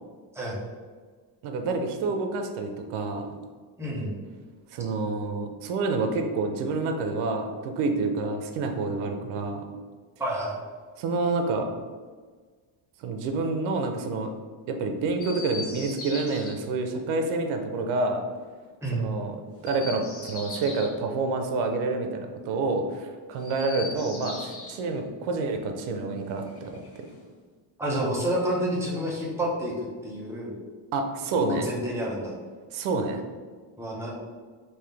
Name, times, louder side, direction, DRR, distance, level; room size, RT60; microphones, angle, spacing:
voice 1, 1.4-3.3 4.7-9.6 11.0-11.7 13.0-14.3 14.7-18.2 18.9-19.3 19.6-26.8 30.9-31.7 32.7-33.2, right 3 dB, 90° right, 5 dB, 0.6 m, -28 dB
voice 2, 3.8-4.2 10.2-10.6 18.8-19.1 27.8-29.7 30.0-30.5 31.4-32.3 33.8-34.1, right 1 dB, 5° right, -4 dB, 0.8 m, -29 dB
Chirp tweet, 15.2-16.5 19.5-20.9 23.3-24.8 26.2-27.3 28.4-29.3, left 3 dB, 30° left, 0.7 m, -40 dB
3.8 x 2.7 x 3.3 m, 1.5 s
cardioid pair, 120°, 47 cm